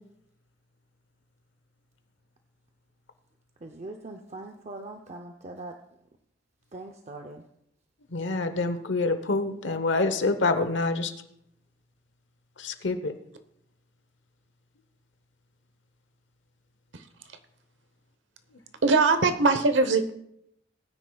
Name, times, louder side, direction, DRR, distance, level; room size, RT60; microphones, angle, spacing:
voice 1, 3.6-5.8 6.7-7.4, right 2 dB, 35° right, 4 dB, 0.6 m, -41 dB
voice 2, 8.1-11.1 12.6-13.1, left 3 dB, 80° left, 9 dB, 1.0 m, -26 dB
voice 3, 18.8-20.1, right 3 dB, 80° right, 9 dB, 1.0 m, -21 dB
19.5 x 9.6 x 2.3 m, 0.76 s
head